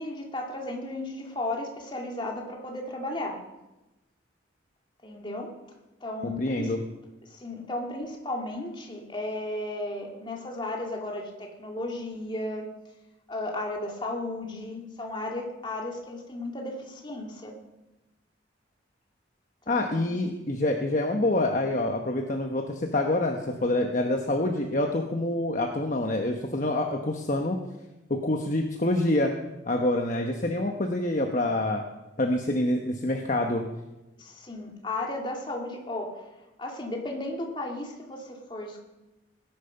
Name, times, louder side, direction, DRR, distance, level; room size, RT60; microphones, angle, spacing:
voice 1, 0.0-3.4 5.0-5.5 6.0-6.7 7.2-12.7 13.3-17.6 19.7-20.1 34.2-36.3 36.6-38.8, left 2 dB, 25° left, 0 dB, 2.4 m, -34 dB
voice 2, 6.2-6.8 19.7-27.6 28.1-29.3 29.7-31.8 32.2-33.6, left 1 dB, 40° left, 3 dB, 1.1 m, -26 dB
19.0 x 10.5 x 5.8 m, 1.0 s
head